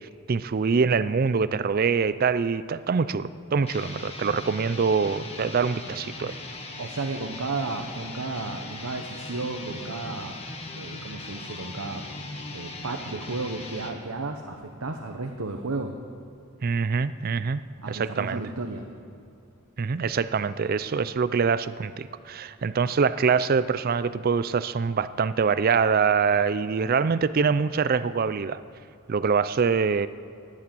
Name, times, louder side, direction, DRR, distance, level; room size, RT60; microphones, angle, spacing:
voice 1, 0.3-6.4 16.6-17.6 17.9-18.4 19.8-28.6 29.1-30.1, right 5 dB, 45° right, 15 dB, 0.4 m, -24 dB
sound 1, 3.6-14.0, left 2 dB, 30° left, 1.6 m, -39 dB
voice 2, 6.8-10.4 10.7-12.0 12.5-15.9 17.8-18.8, right 3 dB, 85° right, 4 dB, 1.0 m, -33 dB
19.0 x 8.6 x 7.7 m, 2.6 s
head